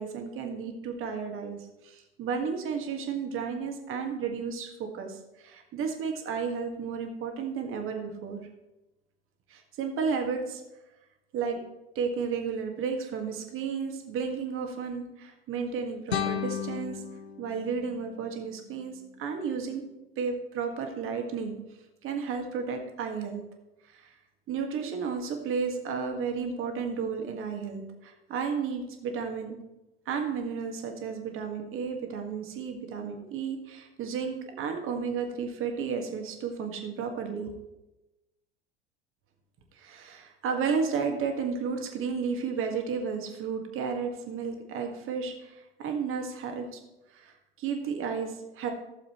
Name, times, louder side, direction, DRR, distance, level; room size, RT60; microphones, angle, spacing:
voice 1, 0.0-1.6 1.8-8.4 9.5-10.6 11.3-11.6 11.9-17.0 17.4-19.8 20.2-21.6 22.0-23.4 23.9-24.1 24.5-29.6 30.0-37.5 39.7-46.8 47.1-48.7, right 6 dB, 40° right, 4 dB, 1.6 m, -33 dB
sound 1, 16.1-19.1, left 8 dB, 85° left, 0.7 m, -35 dB
15.0 x 7.1 x 3.0 m, 0.99 s
figure-of-eight pair, 75°, 31 cm